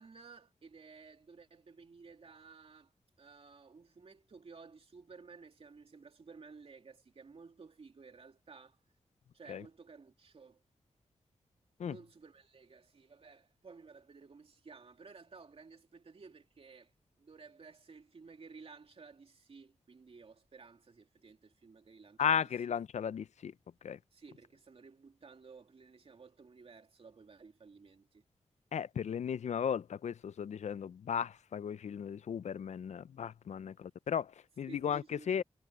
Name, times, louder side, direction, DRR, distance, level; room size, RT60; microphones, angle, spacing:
voice 1, 0.0-2.9 3.2-8.8 9.3-10.6 11.8-16.9 17.2-22.4 24.1-28.2 34.7-35.3, right 4 dB, 55° right, 2.7 m, -55 dB
voice 2, 22.2-23.5 23.8-24.0 28.7-35.4, left 8 dB, 80° left, 0.5 m, -35 dB
wide cardioid pair, 115°, 12 cm